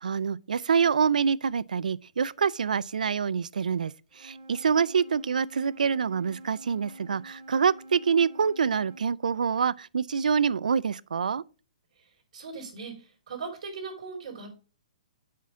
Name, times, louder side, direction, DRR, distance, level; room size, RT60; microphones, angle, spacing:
voice 1, 0.0-11.4, right 6 dB, 90° right, 0.4 m, -26 dB
Wind instrument woodwind instrument, 4.1-9.1, right 1 dB, 25° right, 2.6 m, -47 dB
voice 2, 12.0-14.5, right 4 dB, 60° right, 4.4 m, -39 dB
7.4 x 5.8 x 3.5 m
hypercardioid pair, 145°, 4 cm